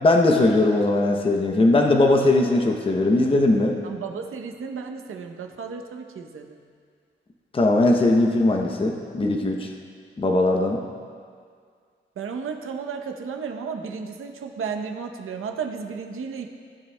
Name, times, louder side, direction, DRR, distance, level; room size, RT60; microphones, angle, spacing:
voice 1, 0.0-3.8 7.5-9.7 10.2-10.8, left 2 dB, 25° left, 2 dB, 0.7 m, -19 dB
voice 2, 3.8-6.6 12.2-16.5, right 6 dB, 90° right, 4 dB, 0.7 m, -33 dB
16.0 x 8.5 x 2.2 m, 2.1 s
wide cardioid pair, 130°, 21 cm